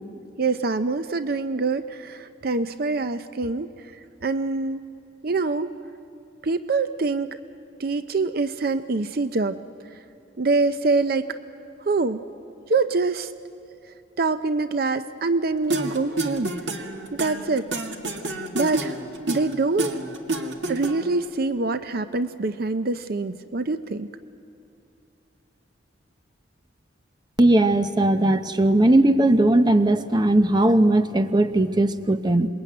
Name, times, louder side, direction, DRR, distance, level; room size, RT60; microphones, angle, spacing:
voice 1, 0.4-3.7 4.2-4.9 5.2-5.7 6.4-7.4 7.8-9.6 10.4-11.4 11.9-12.2 12.7-13.3 14.2-16.5 17.2-17.7 18.5-18.9 19.3-20.0 20.7-24.1, right 3 dB, 55° right, 11 dB, 0.6 m, -25 dB
sound 1, 15.7-21.2, right 2 dB, 90° right, 1.9 m, -29 dB
voice 2, 27.4-32.5, right 1 dB, 25° right, 9 dB, 0.9 m, -18 dB
27.0 x 22.0 x 9.3 m, 2.7 s
head